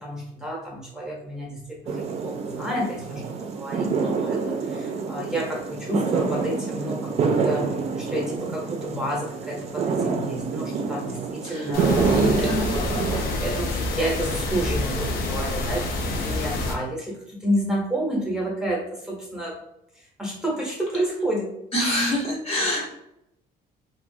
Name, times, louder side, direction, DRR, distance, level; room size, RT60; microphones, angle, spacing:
voice 1, 0.0-4.4 4.7-7.7 8.0-19.6 20.0-21.5, right 1 dB, 5° right, -3 dB, 0.7 m, -30 dB
sound 1, 1.9-13.2, right 5 dB, 40° right, 0.4 m, -27 dB
sound 2, 11.7-16.7, left 2 dB, 70° left, 0.5 m, -28 dB
voice 2, 12.1-12.8 21.7-22.9, left 1 dB, 35° left, -3 dB, 0.7 m, -26 dB
2.3 x 2.0 x 2.6 m, 0.82 s
cardioid pair, 110°, 17 cm